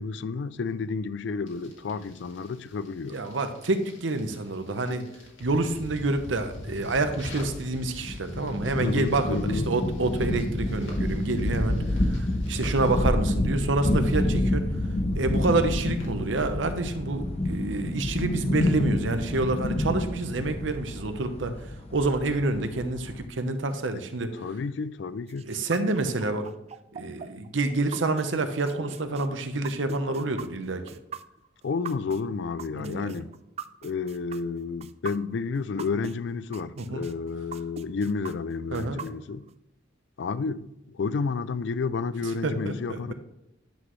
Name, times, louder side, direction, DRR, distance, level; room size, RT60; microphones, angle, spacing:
voice 1, 0.0-3.2 8.8-9.7 23.9-24.0 24.3-25.5 31.6-33.3 33.8-39.4 40.2-43.1, left 4 dB, 65° left, 0.4 m, -31 dB
sound 1, 1.5-16.1, left 1 dB, 85° left, 2.3 m, -48 dB
voice 2, 3.1-5.0 5.4-14.7 15.1-21.5 21.9-24.3 25.4-26.5 26.9-30.8 32.7-33.2 36.8-37.0 38.7-39.0 42.4-43.1, right 2 dB, 80° right, 0.9 m, -28 dB
sound 2, 5.4-23.3, left 1 dB, 35° left, 0.7 m, -29 dB
sound 3, 25.3-36.1 36.5-39.5, right 6 dB, 35° right, 0.3 m, -40 dB
10.5 x 6.1 x 3.1 m
head